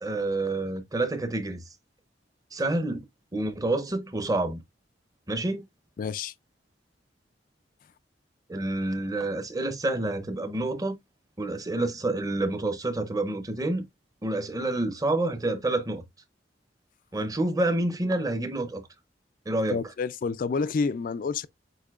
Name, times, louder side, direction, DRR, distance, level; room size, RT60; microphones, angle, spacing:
voice 1, 0.0-1.6 2.5-3.0 3.3-4.6 5.3-5.6 8.5-11.0 11.4-13.8 14.2-16.0 17.1-18.8 19.5-19.8, right 2 dB, 20° right, 0.8 m, -28 dB
voice 2, 6.0-6.3 19.7-21.5, left 4 dB, 50° left, 0.3 m, -29 dB
8.0 x 2.8 x 2.3 m
head